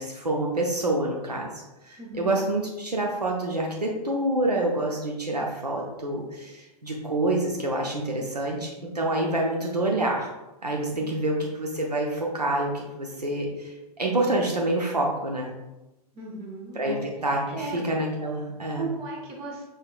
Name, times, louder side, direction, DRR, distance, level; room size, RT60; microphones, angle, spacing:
voice 1, 0.0-1.5 1.9-10.3 10.6-15.5 16.7-18.9, right 1 dB, 85° right, -1 dB, 0.7 m, -27 dB
voice 2, 16.1-17.0 17.5-17.9 18.7-19.6, right 3 dB, 30° right, -2 dB, 1.3 m, -36 dB
5.4 x 3.6 x 2.3 m, 1.0 s
figure-of-eight pair, 100°, 20 cm